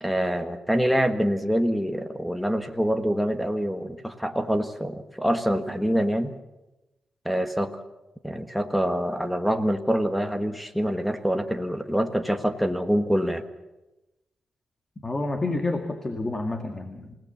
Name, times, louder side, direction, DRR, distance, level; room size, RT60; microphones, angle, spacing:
voice 1, 0.0-6.3 7.2-7.7 8.2-13.4, equal, ahead, 5 dB, 1.3 m, -25 dB
voice 2, 15.0-17.1, left 2 dB, 20° left, 5 dB, 1.9 m, -29 dB
28.5 x 17.5 x 7.1 m, 1.0 s
wide cardioid pair, 130°, 2 cm